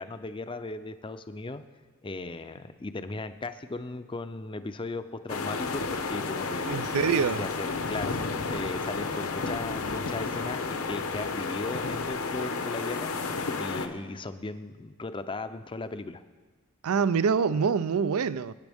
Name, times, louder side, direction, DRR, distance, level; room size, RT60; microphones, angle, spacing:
voice 1, 0.0-1.6 2.0-7.1 7.4-13.1 13.5-16.2, left 2 dB, 25° left, 0.5 m, -37 dB
sound 1, 5.3-13.9, left 4 dB, 70° left, 0.9 m, -32 dB
voice 2, 6.7-7.4 16.8-18.5, right 6 dB, 75° right, 0.4 m, -25 dB
23.0 x 9.1 x 3.5 m
head